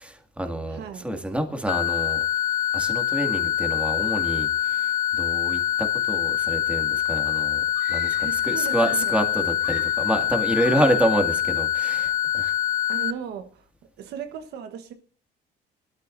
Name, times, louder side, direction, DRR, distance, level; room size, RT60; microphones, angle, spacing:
voice 1, 0.0-2.2 2.7-7.6 7.9-12.6, right 1 dB, 5° right, 2.1 m, -28 dB
voice 2, 0.7-1.1 8.2-9.1 10.7-10.9 12.9-13.7 14.0-14.9, right 7 dB, 75° right, 1.3 m, -36 dB
sound 1, 1.7-13.1, left 11 dB, 50° left, 0.6 m, -25 dB
Screaming, 6.9-7.0 7.7-8.5 8.8-11.1 12.1-12.3, left 6 dB, 80° left, 3.6 m, -41 dB
21.5 x 13.0 x 2.6 m
cardioid pair, 110°, 17 cm